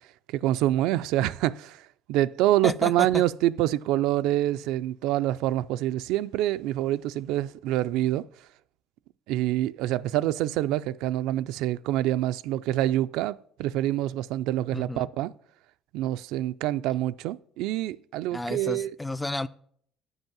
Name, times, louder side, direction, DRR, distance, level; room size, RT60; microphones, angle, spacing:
voice 1, 0.3-8.3 9.3-15.3 15.9-18.9, right 14 dB, 80° right, 0.3 m, -26 dB
voice 2, 2.6-3.2 14.7-15.1 18.3-19.5, left 2 dB, 5° left, 0.3 m, -32 dB
8.0 x 5.4 x 7.1 m
cardioid pair, 145°, 0 cm